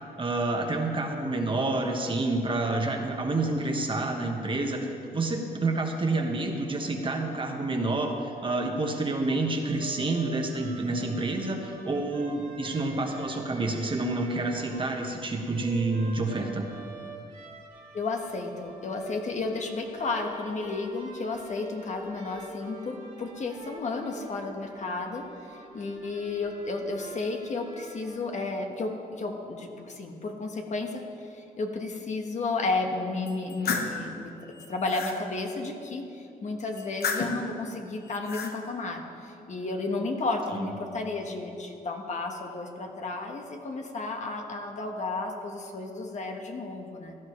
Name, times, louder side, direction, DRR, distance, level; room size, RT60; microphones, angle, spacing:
voice 1, 0.2-4.9 5.1-16.7 40.5-40.7, right 2 dB, 35° right, 2 dB, 1.4 m, -28 dB
sound 1, 9.6-28.2, right 2 dB, 55° right, 2.2 m, -47 dB
voice 2, 17.9-47.2, left 3 dB, 50° left, 2 dB, 1.4 m, -33 dB
sound 2, 33.3-34.0 34.5-35.2 36.8-37.5 38.0-38.5, left 5 dB, 80° left, 1.2 m, -32 dB
16.5 x 11.5 x 3.3 m, 2.6 s
cardioid pair, 85°, 16 cm